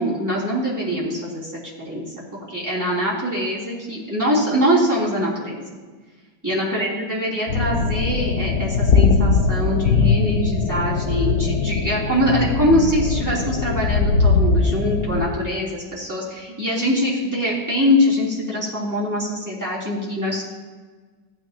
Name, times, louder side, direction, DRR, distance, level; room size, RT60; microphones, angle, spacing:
voice 1, 0.0-2.0 2.5-5.8 6.4-20.4, equal, 10° right, -8 dB, 3.2 m, -23 dB
sound 1, 7.5-15.3, left 4 dB, 65° left, 0.7 m, -20 dB
15.5 x 8.9 x 2.9 m, 1.4 s
omnidirectional pair, 2.1 m